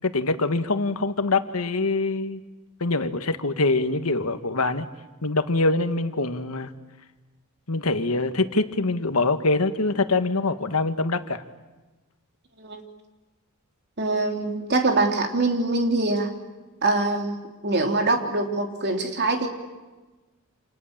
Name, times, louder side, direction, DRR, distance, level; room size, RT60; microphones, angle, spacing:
voice 1, 0.0-2.4 2.8-4.9 5.2-6.7 7.7-11.4, left 3 dB, 80° left, 9 dB, 1.6 m, -24 dB
voice 2, 14.0-16.3 16.8-19.5, right 2 dB, 50° right, 4 dB, 3.3 m, -24 dB
29.0 x 28.0 x 7.4 m, 1.2 s
head